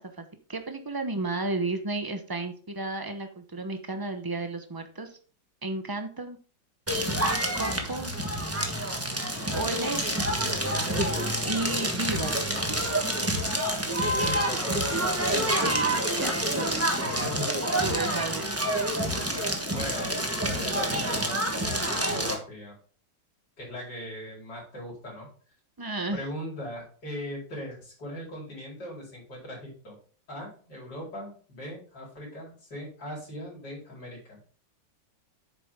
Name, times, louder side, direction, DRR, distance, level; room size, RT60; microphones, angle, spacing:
voice 1, 0.0-5.1 5.6-6.4 7.5-8.1 9.5-10.0 11.4-12.4 12.7-12.9 15.6-15.9 16.2-16.8 17.8-18.5 25.8-26.2, right 2 dB, 35° right, 6 dB, 0.3 m, -32 dB
Crackle, 6.9-22.3, right 1 dB, 10° right, 1.0 m, -28 dB
voice 2, 14.1-15.0 17.0-17.5 18.0-18.3 19.7-20.1 20.5-22.7 23.6-25.3 26.1-30.0 30.3-34.4, equal, 60° left, -4 dB, 5.0 m, -39 dB
9.2 x 7.3 x 3.6 m, 0.41 s
omnidirectional pair, 2.1 m